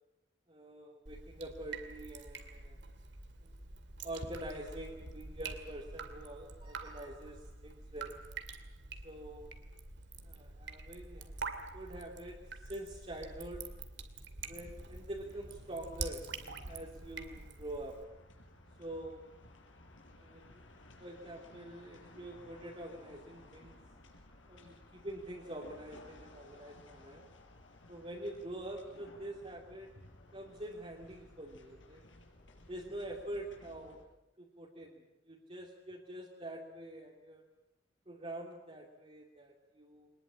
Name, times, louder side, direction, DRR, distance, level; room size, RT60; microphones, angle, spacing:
voice 1, 0.5-2.8 3.4-3.5 4.0-8.2 9.0-9.5 10.2-11.3 11.7-13.7 14.5-16.3 16.6-18.0 18.8-19.2 20.1-20.6 21.0-23.8 24.5-27.2 27.9-29.9 30.3-32.0 32.7-34.0 34.4-37.4 38.1-40.1, right 1 dB, 30° right, -2 dB, 2.8 m, -45 dB
Drip, 1.1-18.0, right 4 dB, 65° right, 2.6 m, -46 dB
sound 1, 14.4-34.0, left 1 dB, 85° left, 5.1 m, -58 dB
23.0 x 20.5 x 8.7 m, 0.89 s
head